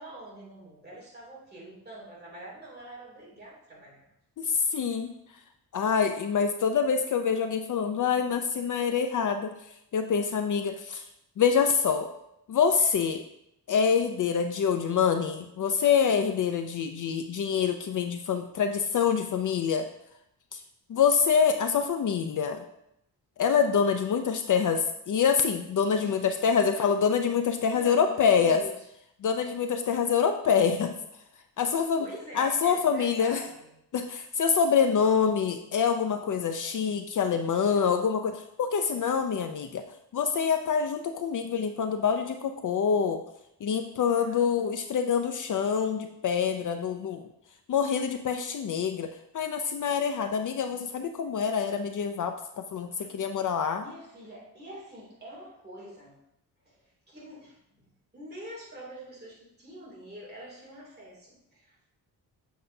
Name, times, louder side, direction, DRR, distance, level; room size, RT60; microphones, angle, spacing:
voice 1, 0.0-4.0 15.6-15.9 26.0-26.4 26.7-26.8 27.7-28.8 32.0-33.7 44.2-44.7 53.0-53.1 53.8-56.2 56.6-61.9, right 1 dB, 25° right, -4 dB, 2.6 m, -45 dB
voice 2, 4.4-5.1 5.7-9.5 9.9-11.0 11.4-12.1 12.5-13.2 13.7-19.9 20.5-20.6 20.9-22.6 23.4-28.6 29.2-30.9 31.6-32.1 32.3-33.4 33.9-39.8 40.1-43.2 43.6-47.2 47.7-49.1 49.3-53.8, left 6 dB, 50° left, 6 dB, 0.5 m, -26 dB
7.8 x 6.5 x 2.7 m, 0.78 s
wide cardioid pair, 135°, 39 cm